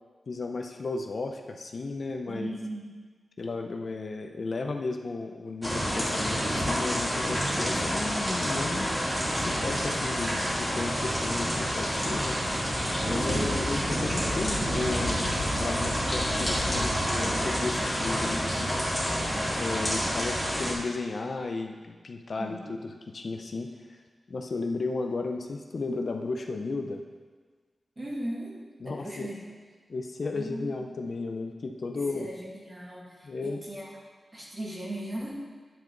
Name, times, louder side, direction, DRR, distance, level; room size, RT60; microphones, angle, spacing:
voice 1, 0.3-2.5 3.4-8.9 9.3-12.4 13.1-15.2 15.5-18.7 19.5-24.0 24.3-27.0 28.8-29.3 29.9-32.3 33.2-33.6, left 3 dB, 55° left, 3 dB, 0.7 m, -34 dB
voice 2, 2.3-2.8 22.4-22.8 28.0-28.5 28.8-29.4 30.3-30.9 31.9-33.8 34.3-35.4, right 1 dB, 25° right, -4 dB, 2.3 m, -38 dB
sound 1, 5.6-20.7, equal, 10° right, 2.6 m, -28 dB
10.5 x 9.1 x 4.0 m, 1.5 s
wide cardioid pair, 130°, 0 cm